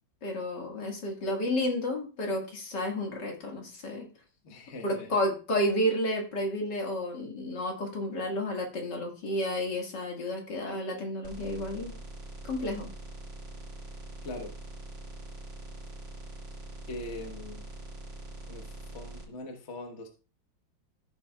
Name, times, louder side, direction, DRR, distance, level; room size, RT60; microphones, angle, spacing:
voice 1, 0.2-4.1 4.8-11.9 12.4-12.9, left 1 dB, 60° left, 1 dB, 2.4 m, -31 dB
voice 2, 4.4-5.1 14.2-14.6 16.9-17.6 18.5-20.1, left 2 dB, 40° left, 3 dB, 1.3 m, -41 dB
sound 1, 11.2-19.2, right 2 dB, 70° right, 3.4 m, -43 dB
14.0 x 7.0 x 2.3 m, 0.34 s
omnidirectional pair, 2.1 m